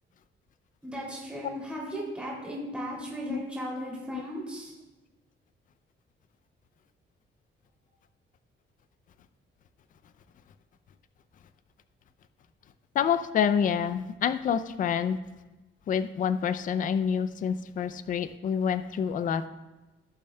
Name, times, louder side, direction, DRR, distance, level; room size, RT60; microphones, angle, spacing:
voice 1, 0.8-4.7, equal, 5° right, -5 dB, 2.7 m, -36 dB
voice 2, 12.9-15.2 15.9-19.5, left 7 dB, 40° left, 12 dB, 0.4 m, -27 dB
17.0 x 7.0 x 2.2 m, 1.1 s
cardioid pair, 155°, 21 cm